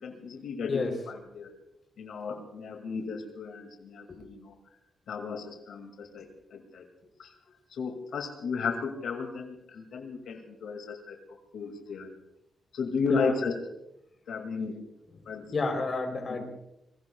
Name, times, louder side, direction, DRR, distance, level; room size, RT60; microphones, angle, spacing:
voice 1, 0.0-1.5 2.0-4.6 5.1-6.8 7.2-7.3 7.7-12.1 12.7-13.6 14.3-14.8 15.3-15.4 16.3-16.4, left 5 dB, 80° left, 3 dB, 2.2 m, -34 dB
voice 2, 15.5-16.4, left 3 dB, 35° left, 3 dB, 3.5 m, -30 dB
26.0 x 23.0 x 2.3 m, 0.82 s
wide cardioid pair, 155°, 0 cm